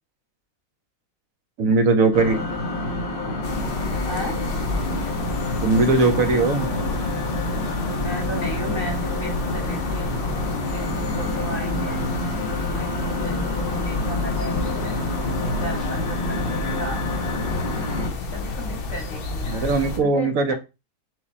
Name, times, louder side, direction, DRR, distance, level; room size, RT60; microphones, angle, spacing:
voice 1, 1.6-2.4 5.6-6.7 19.5-20.5, right 3 dB, 70° right, 7 dB, 1.1 m, -19 dB
sound 1, 2.1-18.1, left 2 dB, 45° left, 0.9 m, -28 dB
sound 2, 3.4-20.0, left 3 dB, 85° left, 1.3 m, -30 dB
voice 2, 4.0-4.4 7.9-10.1 10.5-12.2 12.6-17.1 18.3-20.5, left 1 dB, 65° left, 1 dB, 1.7 m, -35 dB
4.8 x 2.3 x 4.1 m, 0.27 s
omnidirectional pair, 1.5 m